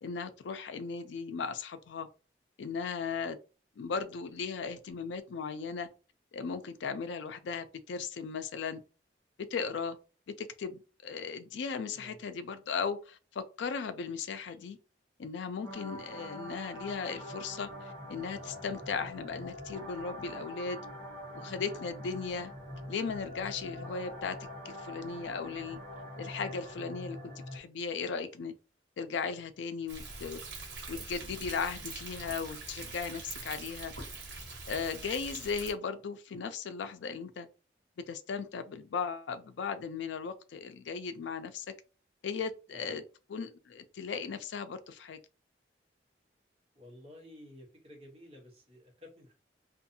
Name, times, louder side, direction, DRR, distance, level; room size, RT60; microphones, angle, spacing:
voice 1, 0.0-2.1 2.6-3.4 3.8-5.9 6.3-8.8 9.5-10.0 10.4-14.8 15.2-20.8 21.3-22.5 22.9-25.8 26.2-28.5 29.0-30.4 30.9-33.9 34.7-37.5 38.0-41.7 42.2-43.0 43.3-45.2, left 5 dB, 80° left, 0.4 m, -37 dB
sound 1, 15.6-27.6, left 1 dB, 15° left, 1.0 m, -44 dB
Thunder, 29.9-35.7, right 3 dB, 80° right, 1.1 m, -43 dB
voice 2, 46.7-49.3, left 1 dB, 35° right, 0.9 m, -52 dB
2.6 x 2.4 x 2.6 m
head